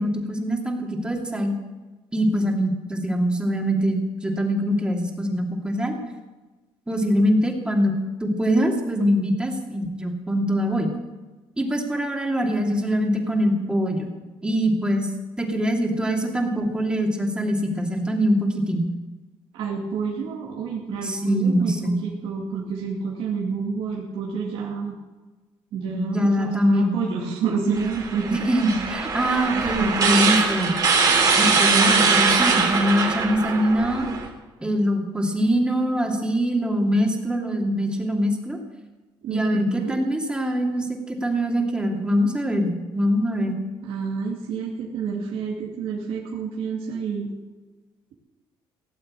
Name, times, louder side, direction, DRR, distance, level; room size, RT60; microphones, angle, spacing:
voice 1, 0.0-1.5 2.1-6.0 6.9-7.9 8.2-10.9 11.6-14.1 14.4-15.1 15.4-18.9 21.0-22.0 25.9-27.0 28.3-30.7 31.4-34.1 34.6-38.6 39.3-43.6, equal, 10° right, 1 dB, 2.6 m, -23 dB
voice 2, 19.5-24.9 25.7-28.5 29.7-30.2 39.2-40.0 43.8-47.3, right 5 dB, 75° right, -3 dB, 2.5 m, -29 dB
sound 1, 27.8-34.3, right 4 dB, 40° right, 3.4 m, -22 dB
17.5 x 7.7 x 8.8 m, 1.2 s
cardioid pair, 115°, 10 cm